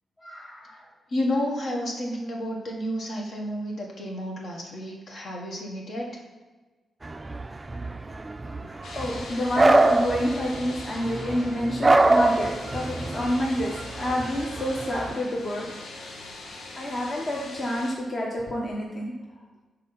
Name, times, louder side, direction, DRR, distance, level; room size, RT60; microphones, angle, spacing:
voice 1, 0.2-0.8 8.9-15.7 16.8-19.1, left 1 dB, 40° left, -3 dB, 1.1 m, -28 dB
voice 2, 1.1-6.2, left 1 dB, 60° left, -1 dB, 1.6 m, -31 dB
sound 1, 7.0-15.1, right 2 dB, 25° right, 0.4 m, -25 dB
sound 2, 8.8-17.9, left 2 dB, 75° left, 1.0 m, -41 dB
6.4 x 4.1 x 5.8 m, 1.3 s
cardioid pair, 85°, 0 cm